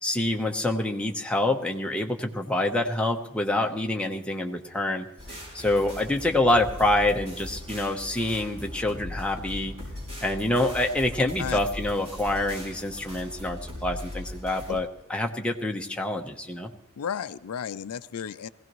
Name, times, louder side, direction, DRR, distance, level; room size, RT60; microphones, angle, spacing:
voice 1, 0.0-5.0 5.5-9.7 10.2-16.7, left 1 dB, 5° left, 2 dB, 0.9 m, -26 dB
sound 1, 5.2-14.8, left 1 dB, 30° right, 6.1 m, -39 dB
voice 2, 17.0-18.5, left 7 dB, 80° left, 14 dB, 0.4 m, -33 dB
20.5 x 16.5 x 3.1 m, 0.88 s
head